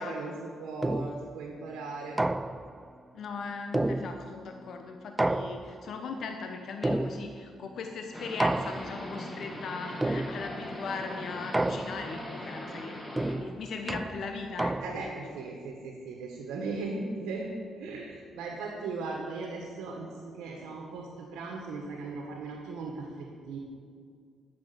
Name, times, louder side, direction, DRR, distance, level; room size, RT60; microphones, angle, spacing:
voice 1, 0.0-2.2 14.8-17.5 17.8-23.6, right 3 dB, 85° right, 0 dB, 1.5 m, -38 dB
sound 1, 0.8-1.4 2.2-2.8 3.7-4.5 5.2-6.0 6.8-7.5 8.4-9.1 10.0-10.7 11.5-12.3 13.2-15.2, right 2 dB, 15° right, 0.3 m, -31 dB
voice 2, 3.1-13.0 13.3-15.3, left 4 dB, 65° left, 4 dB, 0.9 m, -39 dB
sound 2, 8.1-13.3, left 1 dB, 15° left, 2.0 m, -40 dB
12.0 x 6.8 x 6.9 m, 2.1 s
cardioid pair, 90°, 0 cm